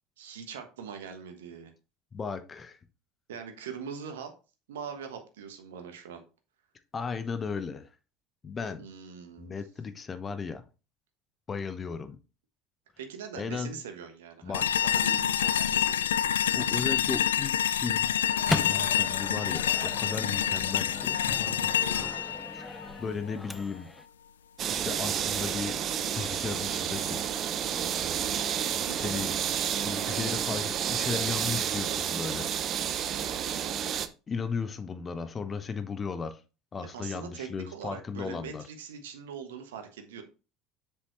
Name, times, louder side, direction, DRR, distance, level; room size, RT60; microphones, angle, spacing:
voice 1, 0.2-1.7 3.3-4.3 4.7-6.2 8.8-9.5 13.0-16.5 21.8-22.1 28.8-29.1 36.8-40.2, right 6 dB, 75° right, 1.2 m, -42 dB
voice 2, 2.1-2.8 6.9-7.9 8.4-8.9 9.4-10.6 11.5-12.2 13.3-13.7 14.4-14.9 16.5-18.1 18.5-21.2 22.5-22.7 23.0-23.9 24.7-25.8 26.1-27.2 28.9-29.3 29.8-32.5 33.5-33.6 34.3-36.4 36.7-38.6, left 5 dB, 30° left, 1.0 m, -35 dB
sound 1, 14.5-23.6, left 10 dB, 80° left, 0.3 m, -27 dB
Microwave oven, 18.0-24.0, left 2 dB, 10° left, 0.5 m, -38 dB
sound 2, 24.6-34.1, right 9 dB, 45° right, 0.8 m, -30 dB
7.5 x 6.9 x 3.1 m
figure-of-eight pair, 70°, 0 cm